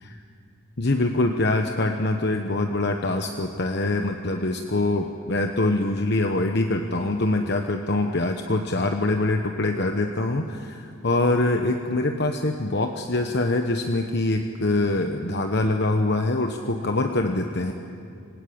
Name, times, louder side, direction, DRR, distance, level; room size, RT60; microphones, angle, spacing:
voice 1, 0.8-17.7, left 2 dB, 50° left, 4 dB, 1.0 m, -24 dB
26.0 x 19.0 x 8.6 m, 2.4 s
head